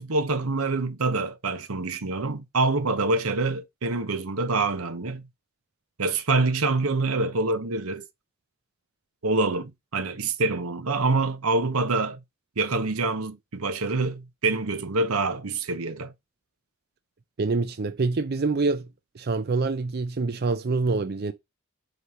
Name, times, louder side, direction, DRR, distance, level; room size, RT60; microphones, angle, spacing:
voice 1, 0.0-5.2 6.0-8.1 9.2-12.2 12.6-16.1, right 3 dB, 85° right, 1.0 m, -26 dB
voice 2, 17.4-18.9 19.1-21.3, right 3 dB, 50° right, 0.5 m, -26 dB
8.0 x 3.3 x 5.6 m
head